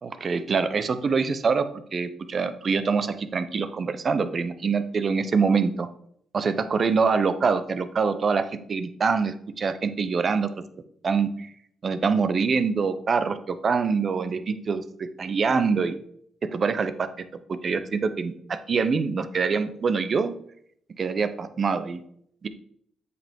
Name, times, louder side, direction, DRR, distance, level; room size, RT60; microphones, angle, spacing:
voice 1, 0.0-5.9 6.3-10.5 11.0-11.5 11.8-16.0 16.4-17.1 17.5-20.3 21.0-22.0 22.4-22.5, right 5 dB, 50° right, 11 dB, 0.8 m, -25 dB
8.1 x 5.3 x 3.7 m, 0.66 s
supercardioid pair, 70°, 0 cm